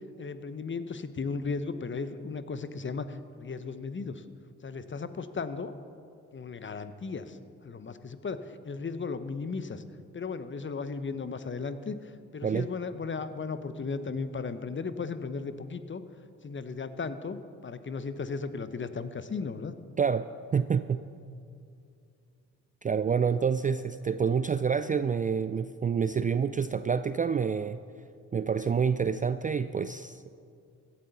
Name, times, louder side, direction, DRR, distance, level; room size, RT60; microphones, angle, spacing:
voice 1, 0.2-4.2 4.6-5.7 6.3-7.4 7.6-9.8 10.1-16.0 16.4-19.7, left 4 dB, 30° left, 12 dB, 0.9 m, -36 dB
voice 2, 20.0-20.3 20.5-21.0 22.8-27.8 28.3-30.3, right 6 dB, 25° right, 12 dB, 0.3 m, -27 dB
16.5 x 11.0 x 4.1 m, 2.4 s
hypercardioid pair, 45°, 37 cm